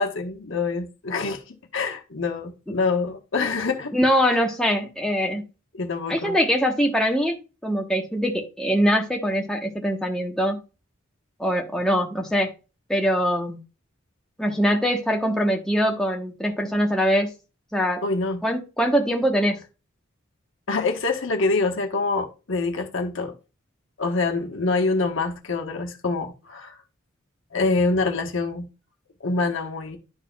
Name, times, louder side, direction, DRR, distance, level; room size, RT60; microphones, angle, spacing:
voice 1, 0.0-3.9 4.3-4.4 5.7-6.3 18.0-18.4 20.7-23.4 24.0-26.8 27.5-28.7 29.2-30.0, left 3 dB, 65° left, 1.2 m, -25 dB
voice 2, 3.9-5.4 6.1-10.6 11.4-12.5 12.9-13.6 14.4-17.3 17.7-18.0 18.4-19.6, equal, 5° left, 1.0 m, -23 dB
11.5 x 4.2 x 2.3 m
head